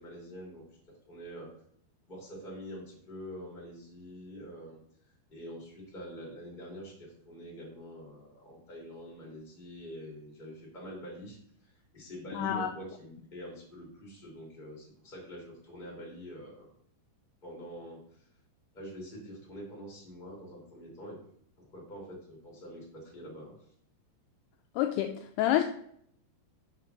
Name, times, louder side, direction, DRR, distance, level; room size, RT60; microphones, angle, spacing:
voice 1, 0.0-1.5 2.1-4.8 5.3-16.7 17.4-18.2 18.7-21.2 21.6-23.5, equal, 15° left, 2.3 m, -45 dB
voice 2, 12.3-12.7 24.8-25.6, left 12 dB, 85° left, 2.3 m, -28 dB
6.5 x 4.9 x 5.8 m
omnidirectional pair, 5.1 m